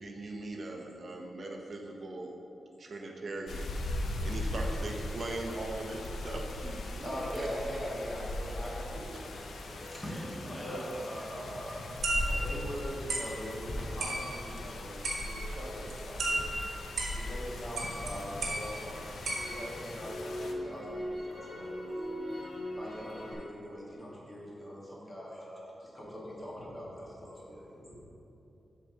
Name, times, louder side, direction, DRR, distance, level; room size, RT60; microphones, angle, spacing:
voice 1, 0.0-2.4 2.8-7.5 8.5-8.6 8.9-9.2, right 2 dB, 40° right, 1 dB, 0.9 m, -40 dB
sound 1, 3.5-20.5, left 1 dB, 85° left, 0.7 m, -39 dB
voice 2, 4.5-4.9 6.9-7.3 9.8-11.3 23.0-23.1 26.7-26.8 27.8-28.0, equal, 5° left, -3 dB, 1.2 m, -44 dB
voice 3, 6.9-9.8 10.5-11.8 12.2-16.8 17.1-22.5 22.7-28.0, equal, 20° left, -6 dB, 1.8 m, -42 dB
sound 2, 12.0-12.7 13.1-13.4 14.0-14.6 15.0-15.6 15.9-17.4 17.8-18.1 18.4-19.8, right 2 dB, 75° right, 1.2 m, -35 dB
Crackle, 13.7-17.8 18.2-23.3, equal, 45° left, 1.6 m, -41 dB
7.3 x 4.7 x 6.5 m, 3.0 s
wide cardioid pair, 175°, 0 cm